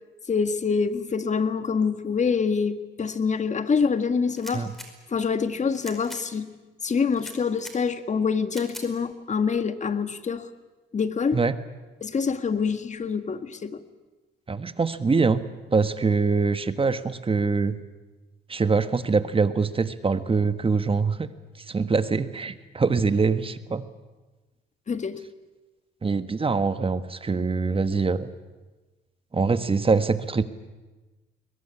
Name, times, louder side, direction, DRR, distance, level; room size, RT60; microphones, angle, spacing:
voice 1, 0.3-4.7 5.1-6.6 6.8-10.5 10.9-11.4 12.0-13.8 24.9-25.2, left 5 dB, 35° left, 10 dB, 1.8 m, -26 dB
sound 1, 4.3-4.9 5.7-6.2 7.1-7.8 8.5-8.9, equal, ahead, 5.1 m, -42 dB
voice 2, 14.5-15.4 15.7-17.8 18.5-21.3 21.7-23.8 26.0-28.3 29.3-30.4, right 4 dB, 25° right, 11 dB, 1.4 m, -24 dB
22.0 x 21.0 x 9.8 m, 1.2 s
cardioid pair, 90°, 20 cm